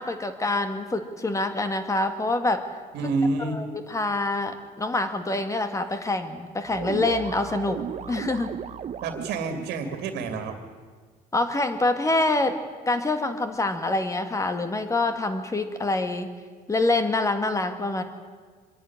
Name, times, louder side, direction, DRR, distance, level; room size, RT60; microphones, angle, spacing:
voice 1, 0.0-2.6 3.4-7.8 8.1-8.5 11.3-12.6 12.9-16.3 16.7-18.0, left 2 dB, 20° left, 8 dB, 2.0 m, -26 dB
voice 2, 2.9-3.6 9.0-10.6, right 3 dB, 80° right, 6 dB, 2.4 m, -28 dB
sound 1, 6.6-9.8, right 8 dB, 40° right, 0.8 m, -35 dB
24.5 x 10.5 x 9.9 m, 1.5 s
cardioid pair, 110°, 17 cm